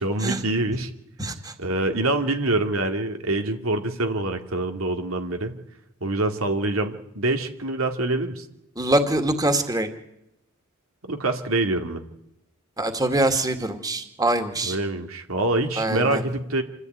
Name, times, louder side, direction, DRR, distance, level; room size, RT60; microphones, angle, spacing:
voice 1, 0.0-0.9 1.6-5.5 6.0-8.4 11.1-12.0 14.6-16.6, right 2 dB, 90° right, 5 dB, 2.5 m, -25 dB
voice 2, 1.2-1.5 8.8-9.9 12.8-14.8 15.8-16.2, right 1 dB, 20° right, 7 dB, 2.2 m, -24 dB
27.0 x 14.5 x 9.4 m, 0.84 s
head